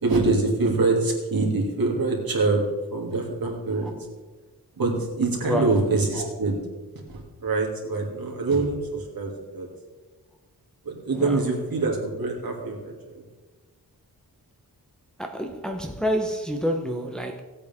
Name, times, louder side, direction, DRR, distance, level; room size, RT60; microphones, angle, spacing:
voice 1, 0.0-2.6 2.9-3.9 4.8-6.6 7.1-9.7 10.8-13.2, right 3 dB, 70° right, 2.6 m, -25 dB
voice 2, 5.4-5.8 11.1-11.4 15.2-17.4, equal, ahead, 0.9 m, -28 dB
18.0 x 8.4 x 3.6 m
wide cardioid pair, 150°, 36 cm